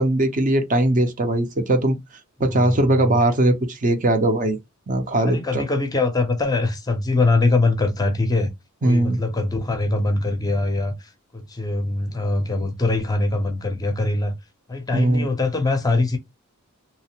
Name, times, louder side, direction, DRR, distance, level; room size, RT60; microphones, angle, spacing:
voice 1, 0.0-2.0 2.4-4.6 4.9-5.6 8.8-9.2 14.9-15.3, right 1 dB, 35° right, 0.5 m, -20 dB
voice 2, 2.5-3.1 5.2-8.5 8.8-14.3 14.7-16.2, left 2 dB, 15° left, 0.5 m, -23 dB
2.8 x 2.0 x 2.8 m
head